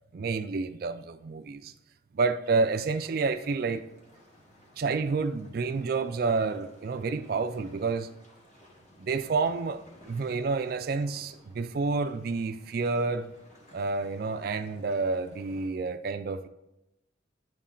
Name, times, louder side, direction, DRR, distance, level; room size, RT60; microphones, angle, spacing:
voice 1, 0.1-1.7 2.1-3.8 4.8-8.1 9.0-13.3 13.7-16.5, right 4 dB, 50° right, 0.3 m, -29 dB
sound 1, 2.4-15.7, left 1 dB, 40° left, 1.4 m, -57 dB
10.5 x 4.2 x 3.8 m
head